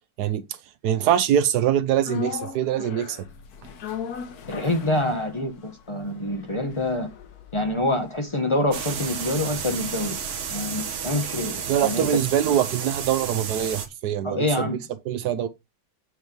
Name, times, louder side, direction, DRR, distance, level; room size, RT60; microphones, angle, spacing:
voice 1, 0.8-3.3 11.7-14.7 15.1-15.5, right 10 dB, 70° right, 1.2 m, -23 dB
sound 1, 2.0-10.3 10.6-10.7, left 7 dB, 65° left, 1.4 m, -39 dB
voice 2, 4.5-7.1 7.5-10.2 10.5-12.2 14.2-14.8, left 1 dB, 30° left, 0.5 m, -26 dB
sound 2, 8.7-13.9, right 7 dB, 50° right, 1.0 m, -32 dB
8.0 x 3.1 x 5.1 m
omnidirectional pair, 1.9 m